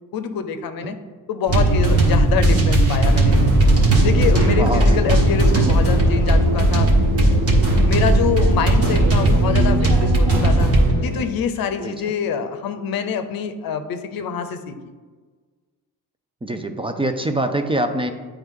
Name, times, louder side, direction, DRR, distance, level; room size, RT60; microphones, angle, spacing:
voice 1, 0.1-0.9 1.3-3.4 4.0-6.9 7.9-10.7 11.0-14.7, left 7 dB, 75° left, 9 dB, 0.7 m, -25 dB
sound 1, 1.5-10.9, right 1 dB, 40° right, 1.6 m, -16 dB
sound 2, 3.2-11.2, right 2 dB, 65° right, 1.9 m, -31 dB
voice 2, 4.6-5.0 11.8-12.1 16.4-18.1, right 1 dB, 15° right, 6 dB, 0.6 m, -24 dB
8.8 x 3.4 x 3.7 m, 1.4 s
cardioid pair, 70°, 36 cm